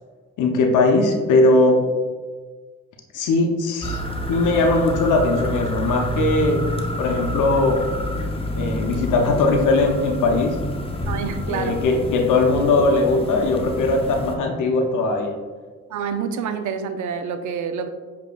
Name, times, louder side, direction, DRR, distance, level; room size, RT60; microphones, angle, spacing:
voice 1, 0.4-1.8 3.1-4.0 4.3-6.7 7.0-7.8 8.6-10.6 11.5-15.3, left 2 dB, 80° left, 2 dB, 0.6 m, -19 dB
sound 1, 3.8-14.3, equal, 20° left, 0.6 m, -28 dB
voice 2, 11.1-11.8 15.9-17.9, right 6 dB, 70° right, 9 dB, 0.5 m, -27 dB
6.7 x 2.9 x 2.2 m, 1.4 s
cardioid pair, 65°, 30 cm